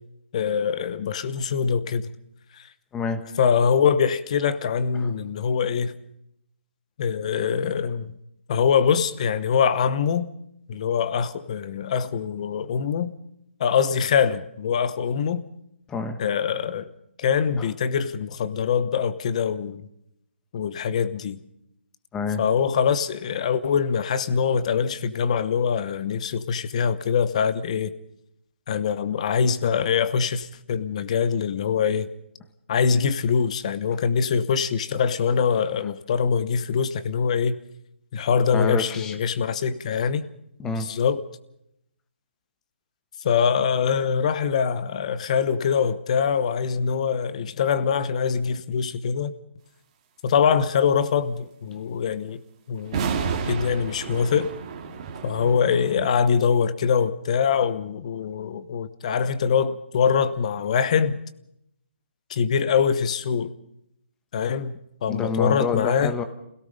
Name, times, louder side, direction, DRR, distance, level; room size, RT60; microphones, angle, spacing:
voice 1, 0.3-2.1 2.5-2.7 3.4-5.9 7.0-8.1 8.5-10.3 10.7-13.1 13.6-15.4 16.2-16.9 17.2-19.9 20.5-21.4 22.4-27.9 28.7-32.1 32.7-37.6 38.1-40.3 40.8-41.3 43.2-49.3 50.2-52.4 52.7-54.5 55.2-61.2 62.3-63.5 64.3-64.7 65.0-66.1, left 6 dB, 30° left, 1.0 m, -23 dB
voice 2, 2.9-3.3 5.0-5.1 15.9-16.2 17.6-17.7 22.1-22.4 38.5-39.2 40.6-40.9 65.1-66.2, left 4 dB, 10° left, 1.1 m, -28 dB
sound 1, 52.9-56.1, right 6 dB, 30° right, 2.0 m, -31 dB
28.0 x 17.5 x 5.3 m
hypercardioid pair, 170°, 7 cm